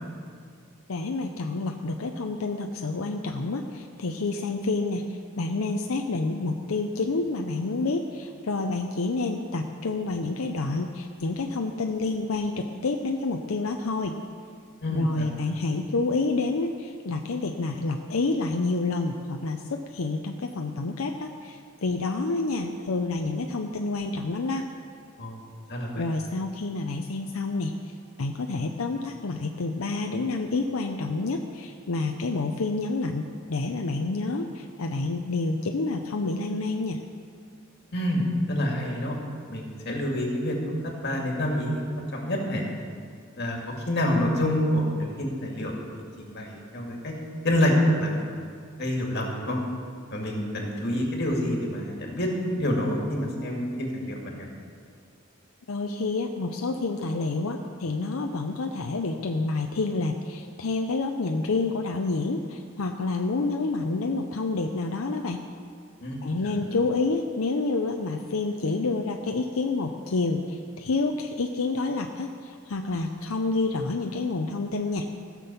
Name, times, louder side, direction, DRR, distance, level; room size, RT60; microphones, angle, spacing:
voice 1, 0.9-14.2 14.9-24.7 25.9-37.0 55.7-65.4 66.2-75.1, left 3 dB, 90° left, 4 dB, 0.6 m, -28 dB
voice 2, 14.8-15.3 25.2-25.4 25.7-26.0 37.9-39.1 39.5-42.6 43.4-43.6 43.9-45.8 46.2-47.1 47.4-47.7 48.0-48.3 48.8-49.6 50.1-52.3 52.6-54.5 66.0-66.2 66.4-66.5, left 1 dB, 50° left, 0 dB, 2.2 m, -27 dB
15.5 x 6.1 x 7.0 m, 2.2 s
head